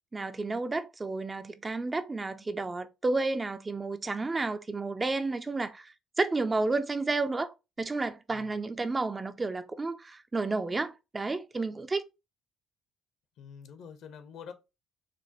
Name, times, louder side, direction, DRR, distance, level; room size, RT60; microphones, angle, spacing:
voice 1, 0.1-7.5 7.8-12.0, right 3 dB, 20° right, 0.3 m, -31 dB
voice 2, 8.3-8.7 13.4-14.5, left 7 dB, 65° left, 0.8 m, -47 dB
4.8 x 2.1 x 2.9 m
cardioid pair, 130°, 0 cm